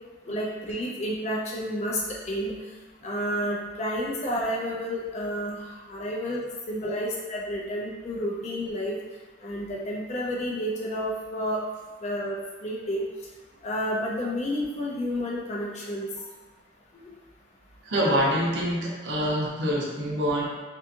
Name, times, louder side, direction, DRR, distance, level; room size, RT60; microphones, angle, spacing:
voice 1, 0.3-2.5 3.0-6.4 6.7-8.9 9.4-11.6 12.0-13.0 13.6-16.1 16.9-17.1, equal, 35° left, -3 dB, 0.4 m, -30 dB
voice 2, 17.8-20.4, equal, 60° right, -3 dB, 0.6 m, -26 dB
2.7 x 2.4 x 2.5 m, 1.3 s
head